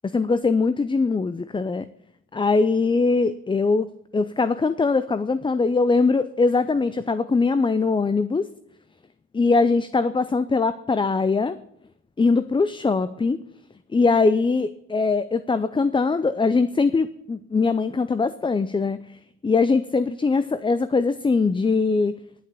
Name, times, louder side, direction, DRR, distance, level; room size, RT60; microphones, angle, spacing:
voice 1, 0.0-1.9 2.3-8.5 9.3-11.6 12.2-13.4 13.9-19.0 19.4-22.2, left 4 dB, 15° left, 13 dB, 0.5 m, -21 dB
11.0 x 7.4 x 6.9 m, 0.74 s
cardioid pair, 90°, 30 cm